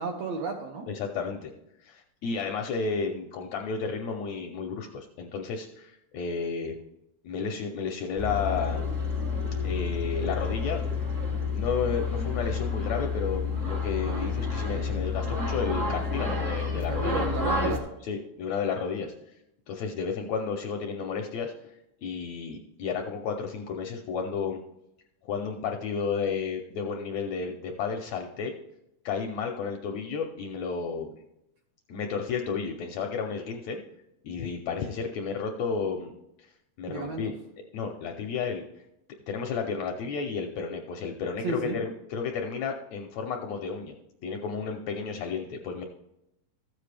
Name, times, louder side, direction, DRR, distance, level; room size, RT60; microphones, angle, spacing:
voice 1, 0.0-0.9 16.7-17.9 36.9-37.3 41.4-41.8, right 4 dB, 70° right, 3 dB, 1.7 m, -33 dB
voice 2, 0.9-1.5 1.8-6.8 7.2-8.9 9.6-10.8 11.5-17.3 17.6-17.7 18.1-19.1 19.7-21.7 22.0-24.6 25.2-28.5 29.1-31.1 31.9-33.8 34.2-36.1 36.4-36.5 36.8-37.3 37.7-38.6 39.3-43.9 44.2-45.8, left 5 dB, 75° left, 3 dB, 1.6 m, -32 dB
sound 1, 8.2-17.8, left 4 dB, 45° right, 0.9 m, -29 dB
13.5 x 7.6 x 3.3 m, 0.85 s
omnidirectional pair, 3.8 m